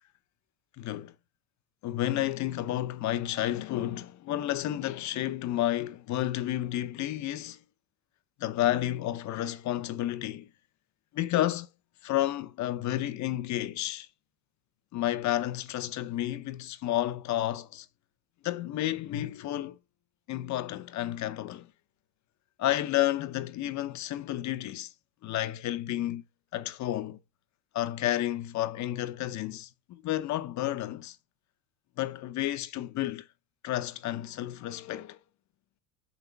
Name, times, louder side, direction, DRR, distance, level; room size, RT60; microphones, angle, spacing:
voice 1, 0.8-1.1 1.8-7.6 8.4-10.5 11.1-11.7 12.0-14.1 14.9-17.9 18.4-19.8 20.3-21.7 22.6-24.9 25.2-26.2 26.5-27.2 27.7-31.2 32.0-33.3 33.6-35.2, left 13 dB, 40° left, 0.7 m, -31 dB
8.2 x 5.5 x 3.4 m
cardioid pair, 135°, 43 cm